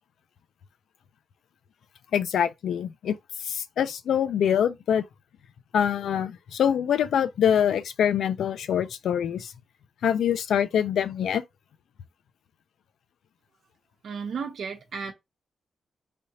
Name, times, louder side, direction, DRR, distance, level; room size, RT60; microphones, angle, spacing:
voice 1, 2.1-5.0 5.7-9.5 10.0-11.4, left 9 dB, 85° left, 0.5 m, -25 dB
voice 2, 14.0-15.1, right 5 dB, 65° right, 0.8 m, -33 dB
3.4 x 2.8 x 4.7 m
wide cardioid pair, 120°, 0 cm